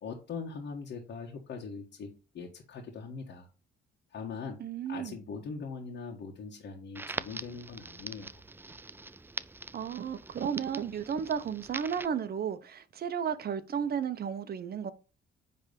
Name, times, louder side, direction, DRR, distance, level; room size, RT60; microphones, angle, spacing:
voice 1, 0.0-3.5 4.1-4.6 4.9-8.4, left 5 dB, 65° left, 1.6 m, -41 dB
voice 2, 4.6-5.2 9.7-14.9, right 7 dB, 50° right, 0.9 m, -33 dB
Crackle, 7.0-12.1, right 2 dB, 10° right, 0.4 m, -43 dB
9.7 x 3.5 x 5.3 m
cardioid pair, 90°, 20 cm